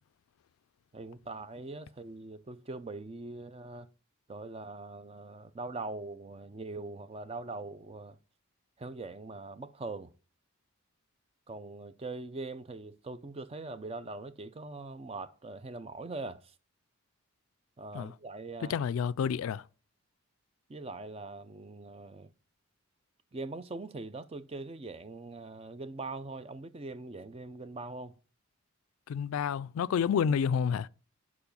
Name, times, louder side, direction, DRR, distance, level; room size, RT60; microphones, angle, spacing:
voice 1, 0.9-3.9 4.3-8.2 8.8-10.1 11.5-16.4 17.8-18.8 20.7-22.3 23.3-28.2, right 3 dB, 30° right, 0.5 m, -42 dB
voice 2, 18.6-19.6 29.1-30.9, left 7 dB, 75° left, 0.3 m, -29 dB
7.0 x 4.8 x 5.3 m
head